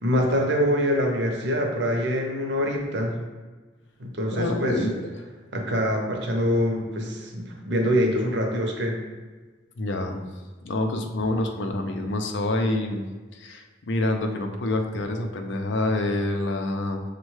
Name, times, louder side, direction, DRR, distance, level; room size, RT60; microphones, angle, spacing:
voice 1, 0.0-3.1 4.0-4.8 5.5-9.0, equal, 65° right, 1 dB, 0.7 m, -24 dB
voice 2, 4.3-5.0 9.8-10.2 10.6-13.0 13.3-17.0, left 2 dB, 70° left, 4 dB, 0.5 m, -27 dB
6.1 x 2.2 x 3.1 m, 1.3 s
head